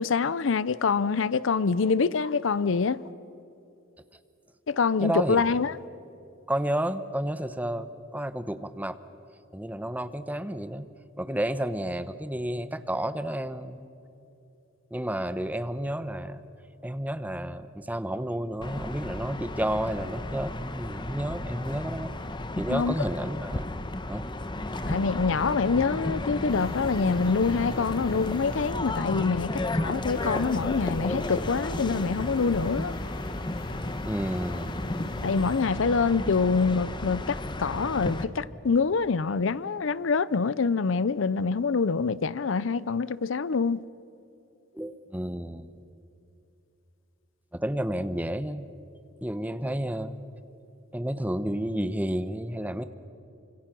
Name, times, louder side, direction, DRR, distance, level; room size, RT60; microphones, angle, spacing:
voice 1, 0.0-3.0 4.7-5.8 22.7-22.9 24.9-32.9 35.2-43.8, left 5 dB, 70° left, 0.6 m, -25 dB
voice 2, 5.0-5.6 6.5-9.0 9.5-10.9 11.2-13.9 14.9-16.4 16.8-22.1 22.6-23.6 24.1-24.3 34.0-34.8 44.7-45.7 47.5-48.7 49.2-50.2 50.9-52.9, right 1 dB, 10° right, 0.9 m, -31 dB
sound 1, 18.6-38.2, left 1 dB, 25° left, 1.0 m, -33 dB
sound 2, 26.5-28.7 30.1-35.6, left 2 dB, 50° left, 1.1 m, -42 dB
29.0 x 25.5 x 6.1 m
head